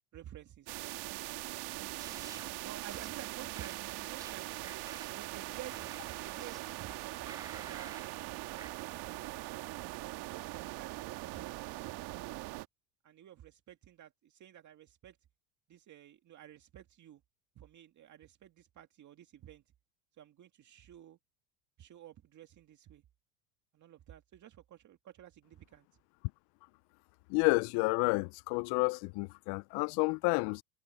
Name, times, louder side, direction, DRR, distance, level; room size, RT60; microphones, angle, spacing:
voice 1, 0.1-0.8 1.8-2.1 2.6-4.5 5.1-9.6 10.0-12.1 13.0-15.2 15.7-17.2 17.6-19.6 20.2-21.2 21.8-23.0 23.7-25.9, right 11 dB, 40° right, 2.2 m, -52 dB
sound 1, 0.7-12.7, right 18 dB, 55° right, 1.8 m, -41 dB
sound 2, 2.0-2.5 2.9-3.2 3.5-5.3 5.7-6.8 7.3-8.1 8.6-8.7, right 4 dB, 10° right, 0.3 m, -51 dB
voice 2, 27.3-30.6, left 31 dB, 55° left, 0.5 m, -30 dB
supercardioid pair, 105°, 45 cm